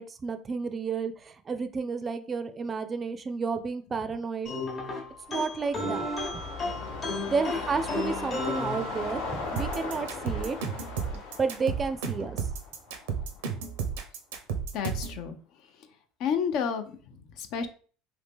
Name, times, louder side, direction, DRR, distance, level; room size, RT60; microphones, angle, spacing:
voice 1, 0.0-4.5 5.3-6.1 7.3-10.6 11.1-12.4, right 5 dB, 30° right, 10 dB, 0.4 m, -31 dB
sound 1, 4.5-9.5, left 2 dB, 35° left, 0.9 m, -34 dB
sound 2, 5.1-13.6 13.9-14.0, left 3 dB, 85° left, 0.9 m, -38 dB
voice 2, 6.8-7.1 14.7-15.4 16.2-17.7, left 7 dB, 65° left, 8 dB, 0.5 m, -31 dB
sound 3, 9.6-15.2, right 6 dB, 90° right, 0.6 m, -32 dB
2.9 x 2.7 x 3.5 m, 0.42 s
supercardioid pair, 90°, 0 cm